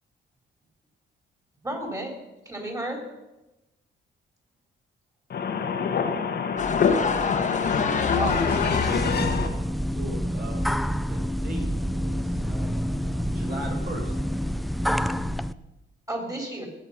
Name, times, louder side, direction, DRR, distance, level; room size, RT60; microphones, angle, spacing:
voice 1, 1.6-2.1 2.5-3.0 8.1-8.5 16.1-16.7, right 1 dB, 15° right, 4.0 m, -31 dB
voice 2, 5.3-9.5, left 6 dB, 55° left, 1.5 m, -25 dB
sound 1, 6.6-9.3, left 5 dB, 35° left, 1.6 m, -28 dB
sound 2, 8.2-15.5, equal, ahead, 0.4 m, -28 dB
voice 3, 9.9-10.6 11.0-14.2, right 1 dB, 50° right, 5.4 m, -39 dB
19.5 x 7.2 x 5.7 m
cardioid pair, 90°, 20 cm